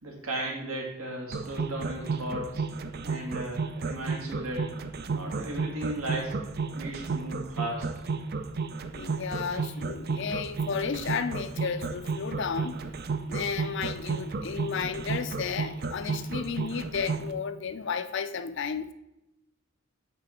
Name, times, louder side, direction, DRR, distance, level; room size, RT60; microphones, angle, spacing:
voice 1, 0.0-2.6 3.0-4.7 5.1-6.4 6.7-7.9, right 1 dB, 80° right, 2.1 m, -35 dB
sound 1, 1.3-17.3, right 4 dB, 45° right, 0.4 m, -32 dB
voice 2, 8.9-12.8 13.3-18.9, left 6 dB, 55° left, 0.5 m, -33 dB
9.2 x 3.7 x 4.4 m
head